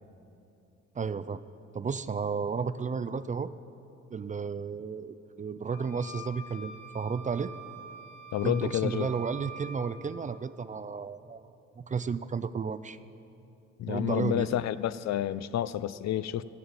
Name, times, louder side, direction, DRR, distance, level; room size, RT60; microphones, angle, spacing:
voice 1, 1.0-1.4 1.7-3.5 4.1-7.5 8.4-11.5 11.8-13.0 13.9-14.5, right 5 dB, 25° right, 13 dB, 0.4 m, -33 dB
sound 1, 5.7-9.8, right 2 dB, 90° left, 1.8 m, -45 dB
voice 2, 8.3-9.1 13.8-16.4, left 11 dB, 65° left, 16 dB, 0.5 m, -29 dB
15.0 x 13.5 x 4.1 m, 2.8 s
cardioid pair, 90°, 30 cm